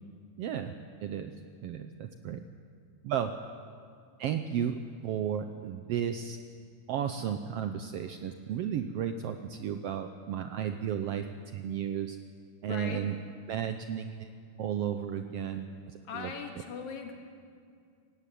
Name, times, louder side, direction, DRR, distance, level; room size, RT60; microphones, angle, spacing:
voice 1, 0.4-1.3 1.6-2.4 3.0-3.3 4.2-6.4 6.9-11.3 11.5-12.2 12.6-13.2 13.5-14.3 14.6-16.3, right 9 dB, 85° right, 8 dB, 1.3 m, -33 dB
voice 2, 12.6-13.0 16.1-17.1, left 6 dB, 70° left, 3 dB, 3.2 m, -39 dB
17.0 x 16.5 x 9.2 m, 2.2 s
omnidirectional pair, 3.7 m